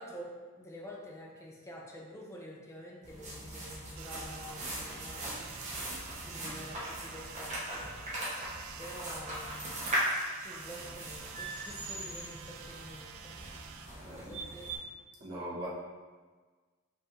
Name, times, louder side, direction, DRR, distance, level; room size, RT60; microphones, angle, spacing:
voice 1, 0.0-7.9 8.8-9.9 10.4-13.3 14.0-14.7, equal, 15° left, -3 dB, 0.7 m, -48 dB
sound 1, 3.0-14.8, right 1 dB, 35° right, 1.2 m, -39 dB
sound 2, 4.0-13.9, right 7 dB, 70° right, 0.3 m, -49 dB
voice 2, 14.0-14.4 15.2-15.7, right 1 dB, 50° right, -7 dB, 1.3 m, -40 dB
5.5 x 3.4 x 2.7 m, 1.4 s
head